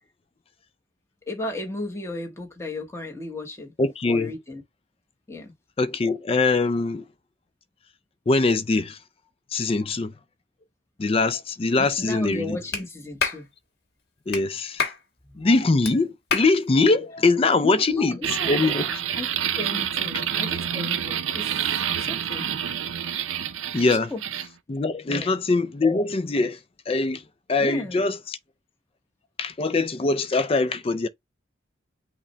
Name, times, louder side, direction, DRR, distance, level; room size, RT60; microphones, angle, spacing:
voice 1, 1.3-3.7 4.1-4.6 5.3-5.5 11.8-13.5 15.3-15.4 17.6-18.7 19.1-19.3 19.6-22.4 23.9-24.2 25.1-25.3 27.6-28.1, left 2 dB, 15° left, 1.0 m, -34 dB
voice 2, 3.8-4.3 5.8-7.1 8.3-9.0 9.5-10.1 11.0-12.6 14.3-14.8 15.4-18.2 18.5-19.0 23.7-24.1 24.7-26.6 26.9-27.2 27.5-28.4 29.4-31.1, left 3 dB, 30° left, 0.4 m, -22 dB
Clapping, 12.7-12.8 13.2-13.4 14.3-14.4 14.8-15.0 15.8-15.9 16.3-16.5, left 5 dB, 55° left, 1.3 m, -26 dB
sound 1, 18.2-24.5, right 9 dB, 85° right, 0.6 m, -28 dB
5.8 x 2.2 x 4.0 m
head